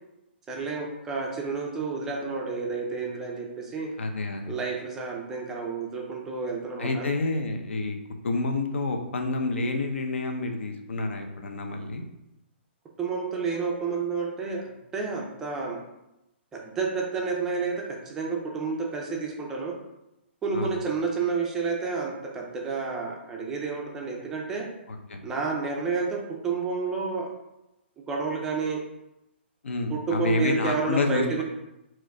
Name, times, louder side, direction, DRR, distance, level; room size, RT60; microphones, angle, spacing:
voice 1, 0.5-3.9 4.5-7.1 13.0-15.8 16.5-19.8 20.4-24.7 25.2-27.3 28.1-28.8 29.9-31.4, right 4 dB, 5° right, -1 dB, 0.3 m, -30 dB
voice 2, 4.0-4.5 6.8-8.0 8.2-12.0 20.5-20.8 25.1-25.2 29.6-31.4, left 3 dB, 85° left, 4 dB, 0.8 m, -28 dB
4.6 x 2.5 x 4.6 m, 0.91 s
hypercardioid pair, 175°, 6 cm